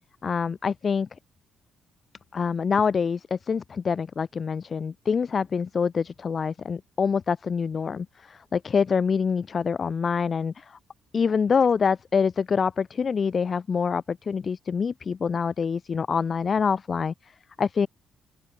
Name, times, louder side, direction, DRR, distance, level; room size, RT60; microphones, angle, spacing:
voice 1, 0.2-1.1 2.3-10.8 11.1-17.3 17.6-17.9, left 6 dB, 40° left, 3.3 m, -25 dB
open air
cardioid pair, 90°, 0 cm